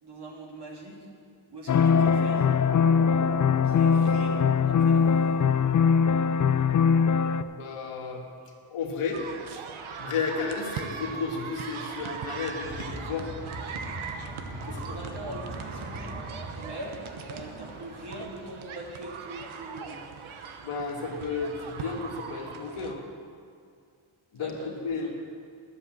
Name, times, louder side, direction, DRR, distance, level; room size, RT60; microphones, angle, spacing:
voice 1, 0.0-1.1 1.5-2.5 3.6-5.2 14.6-16.3 16.6-20.1 24.4-25.1, right 1 dB, 50° right, -2 dB, 2.7 m, -42 dB
sound 1, 1.7-7.4, left 6 dB, 40° left, 0.4 m, -21 dB
voice 2, 7.4-8.2 8.7-9.2 10.0-13.3 14.7-15.0 20.6-23.0 24.3-24.5 24.8-25.1, left 5 dB, 85° left, 0 dB, 1.9 m, -32 dB
sound 2, 9.1-22.9, right 6 dB, 70° right, 1.0 m, -40 dB
ambience bridge, 12.6-18.2, right 1 dB, 20° right, 2.6 m, -41 dB
11.5 x 7.6 x 7.5 m, 2.2 s
cardioid pair, 85°, 50 cm